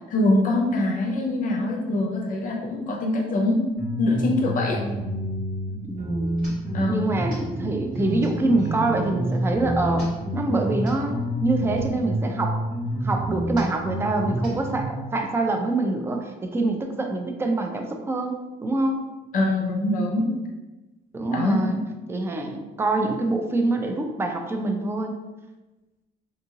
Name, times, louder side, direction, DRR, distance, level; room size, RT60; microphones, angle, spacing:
voice 1, 0.1-3.6 4.0-4.8 6.7-7.1 19.3-20.3 21.3-21.8, left 2 dB, 55° left, 0 dB, 0.5 m, -23 dB
sound 1, 3.7-14.9, right 1 dB, 55° right, 1.5 m, -28 dB
voice 2, 5.8-6.3 6.8-12.6 13.0-19.0 21.1-21.8 22.1-25.2, right 2 dB, 15° right, 4 dB, 0.4 m, -25 dB
2.7 x 2.7 x 2.7 m, 1.1 s
cardioid pair, 110°, 17 cm